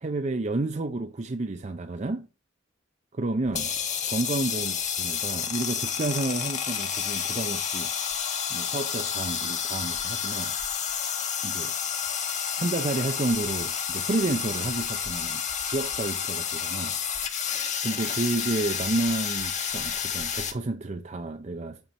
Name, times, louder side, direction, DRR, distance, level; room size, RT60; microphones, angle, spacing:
voice 1, 0.0-2.3 3.1-3.7 4.1-7.9 8.5-10.5 11.4-11.7 12.6-17.0 17.8-21.8, right 2 dB, 35° right, 0.6 m, -30 dB
sound 1, 3.5-20.5, left 7 dB, 40° left, 1.3 m, -30 dB
8.9 x 4.4 x 5.4 m
head